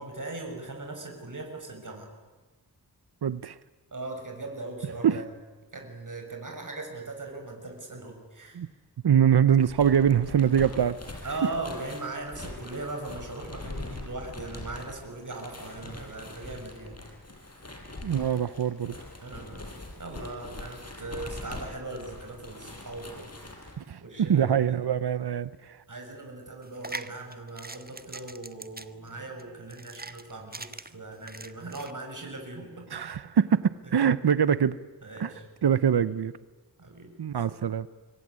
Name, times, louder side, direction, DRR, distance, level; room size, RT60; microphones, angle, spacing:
voice 1, 0.0-2.1 3.9-5.3 5.7-8.6 11.2-17.0 19.2-19.7 20.0-24.8 25.9-32.9 35.0-35.4 35.9-36.0 36.8-37.1, right 2 dB, 50° right, 2 dB, 6.3 m, -39 dB
voice 2, 3.2-3.6 5.0-5.2 8.5-8.7 9.0-11.0 18.0-18.9 23.8-25.8 32.9-34.8 35.2-35.3 35.6-36.3 37.2-37.9, right 8 dB, 85° right, 15 dB, 0.8 m, -24 dB
sound 1, 9.6-23.7, left 2 dB, 40° left, 6.2 m, -43 dB
sound 2, 26.6-31.9, right 2 dB, 25° right, 1.5 m, -42 dB
25.5 x 23.0 x 9.7 m, 1.3 s
wide cardioid pair, 70°, 38 cm